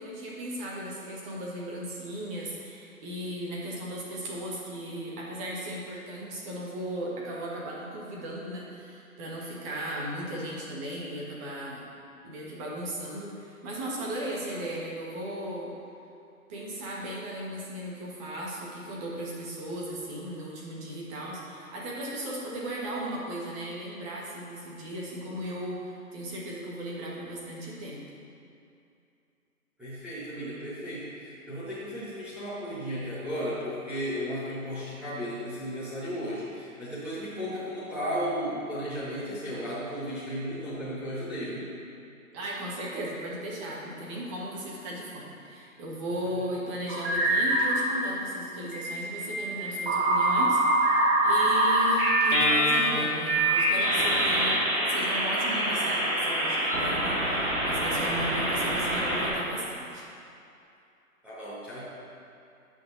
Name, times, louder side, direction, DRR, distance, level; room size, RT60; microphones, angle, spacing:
voice 1, 0.0-11.9 12.2-15.7 16.5-28.0 42.3-54.6 54.9-60.0, right 1 dB, 20° right, -4 dB, 1.6 m, -36 dB
voice 2, 29.8-41.7 61.2-61.8, equal, 5° right, -12 dB, 1.3 m, -34 dB
sound 1, 46.9-47.8 48.7-59.3, right 1 dB, 40° right, 2.2 m, -25 dB
17.5 x 6.4 x 2.8 m, 2.6 s
figure-of-eight pair, 130°, 44 cm